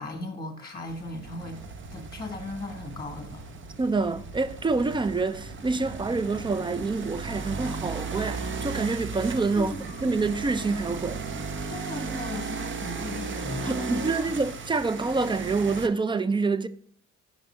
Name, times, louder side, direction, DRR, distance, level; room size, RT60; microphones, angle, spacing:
voice 1, 0.0-1.6 1.9-3.4 9.5-10.1 11.7-14.6, left 2 dB, 15° left, 1.4 m, -37 dB
sound 1, 0.9-15.9, right 5 dB, 40° right, 0.7 m, -36 dB
sound 2, 1.2-11.8, right 2 dB, 85° right, 1.3 m, -45 dB
voice 2, 3.8-9.7 10.0-11.2 13.7-16.7, right 3 dB, 15° right, 0.3 m, -27 dB
5.9 x 5.5 x 4.2 m
cardioid pair, 90°, 30 cm